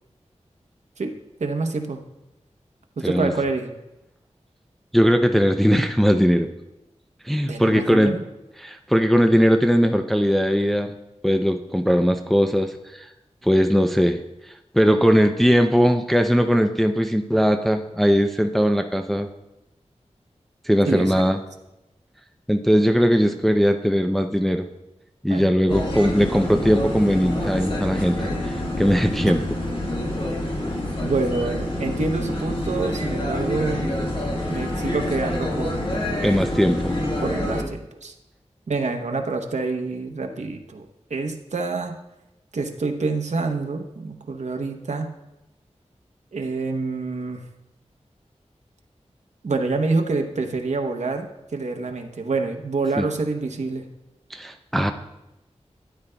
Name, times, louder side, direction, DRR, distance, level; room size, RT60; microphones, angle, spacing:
voice 1, 1.4-2.0 3.0-3.7 7.5-8.2 20.9-21.3 25.3-25.8 29.2-29.3 31.0-33.9 34.5-36.0 37.2-38.1 38.7-40.8 41.1-42.0 42.5-45.1 46.3-47.4 49.4-51.3 51.5-53.8, right 3 dB, 75° right, 4 dB, 0.8 m, -27 dB
voice 2, 4.9-6.5 7.2-8.2 8.6-11.0 11.2-13.1 13.4-14.2 14.7-19.3 20.6-21.4 22.5-24.7 25.2-29.4 36.2-37.0 53.0-53.1 54.3-54.9, equal, ahead, 6 dB, 0.4 m, -19 dB
sound 1, 25.7-37.6, left 1 dB, 45° left, 1.6 m, -27 dB
12.5 x 9.7 x 2.2 m, 0.93 s
wide cardioid pair, 70°, 12 cm